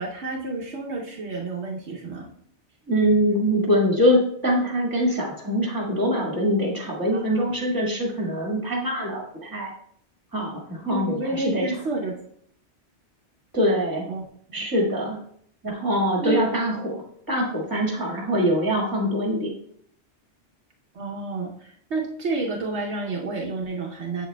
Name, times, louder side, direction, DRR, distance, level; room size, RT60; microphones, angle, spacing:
voice 1, 0.0-2.3 7.1-7.6 10.9-12.2 14.1-14.2 16.2-16.4 20.9-24.3, right 3 dB, 75° right, -1 dB, 1.1 m, -30 dB
voice 2, 2.9-9.7 10.3-11.7 13.5-14.0 14.5-15.2 15.6-19.5, equal, 20° right, -2 dB, 1.7 m, -23 dB
7.6 x 7.1 x 2.2 m, 0.65 s
omnidirectional pair, 1.2 m